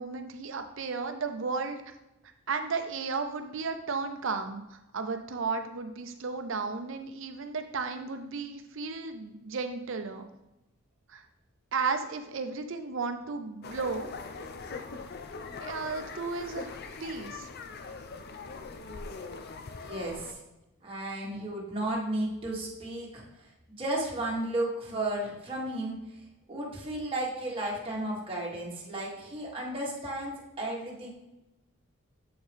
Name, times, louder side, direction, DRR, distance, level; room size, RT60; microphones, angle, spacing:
voice 1, 0.0-1.8 2.5-10.2 11.1-11.3 11.7-14.1 15.6-17.5, right 4 dB, 65° right, 7 dB, 0.6 m, -34 dB
sound 1, 13.6-20.3, left 4 dB, 50° left, 0.5 m, -41 dB
voice 2, 19.8-20.4 20.8-23.2 23.8-26.1 26.5-31.1, right 1 dB, 25° right, -4 dB, 1.4 m, -33 dB
7.5 x 4.5 x 3.4 m, 0.95 s
head